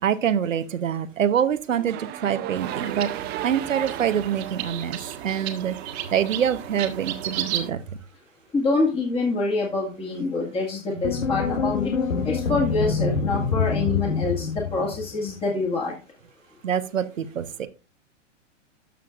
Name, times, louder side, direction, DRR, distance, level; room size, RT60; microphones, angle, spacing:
voice 1, 0.0-3.1 3.4-5.7 6.1-7.8 10.9-11.0 16.6-17.7, right 9 dB, 80° right, 11 dB, 1.0 m, -25 dB
sound 1, 1.7-5.9, right 13 dB, 25° right, 0.8 m, -36 dB
sound 2, 2.5-7.7, right 10 dB, 55° right, 1.6 m, -34 dB
voice 2, 8.5-11.9 12.2-15.9, left 3 dB, 15° left, -2 dB, 1.7 m, -26 dB
sound 3, 11.0-15.3, left 5 dB, 85° left, 1.3 m, -26 dB
13.0 x 6.0 x 2.5 m, 0.32 s
hypercardioid pair, 115°, 38 cm